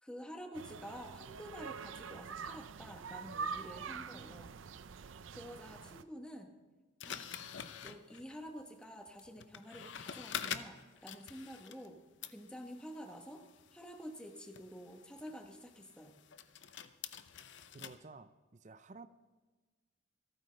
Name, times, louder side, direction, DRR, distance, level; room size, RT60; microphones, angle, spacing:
voice 1, 0.0-4.5 5.3-6.5 7.0-7.3 7.8-12.0 12.3-13.4 13.7-16.2, equal, 5° left, 3 dB, 1.1 m, -49 dB
sound 1, 0.5-6.0, right 5 dB, 85° right, 0.5 m, -45 dB
sound 2, 7.0-11.9 12.2-18.0, left 8 dB, 75° left, 0.7 m, -47 dB
voice 2, 17.7-19.1, right 3 dB, 40° right, 13 dB, 0.5 m, -53 dB
26.5 x 9.0 x 3.3 m, 1.3 s
head